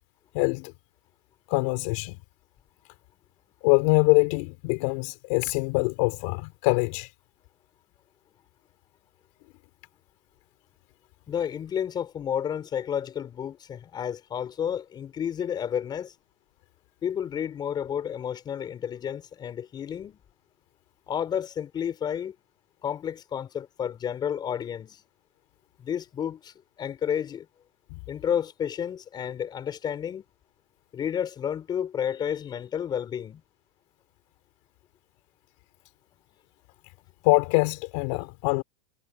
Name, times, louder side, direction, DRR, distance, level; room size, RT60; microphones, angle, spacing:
voice 1, 0.3-0.7 1.5-2.2 3.6-7.1 27.9-28.0 37.2-38.6, left 29 dB, 50° left, 3.9 m, -24 dB
voice 2, 11.3-16.1 17.0-20.2 21.1-22.4 22.8-25.0 25.8-27.5 28.1-30.2 30.9-33.4, left 8 dB, 20° left, 5.5 m, -31 dB
supercardioid pair, 155°, 20 cm